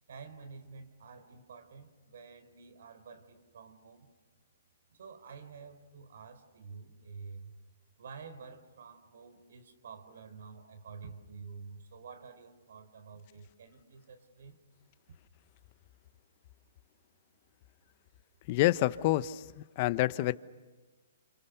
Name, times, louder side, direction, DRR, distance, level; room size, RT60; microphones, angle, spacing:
voice 1, 0.1-4.1 4.9-7.5 8.0-14.6, right 5 dB, 70° right, 4.5 m, -49 dB
voice 2, 18.5-20.3, left 16 dB, 40° left, 1.0 m, -28 dB
29.5 x 28.5 x 6.9 m
hypercardioid pair, 140°, 0 cm